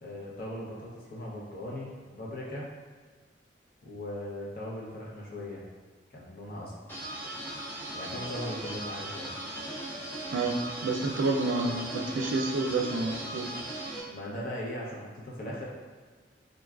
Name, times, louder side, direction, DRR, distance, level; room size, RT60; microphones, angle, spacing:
voice 1, 0.0-2.7 3.8-5.6 6.1-7.0 7.9-9.3 14.1-15.7, left 1 dB, 50° left, -4 dB, 0.6 m, -39 dB
sound 1, 6.9-14.0, right 1 dB, 10° left, 0.6 m, -38 dB
voice 2, 10.3-13.5, right 3 dB, 80° right, 2 dB, 0.4 m, -29 dB
3.9 x 2.3 x 2.3 m, 1.5 s
head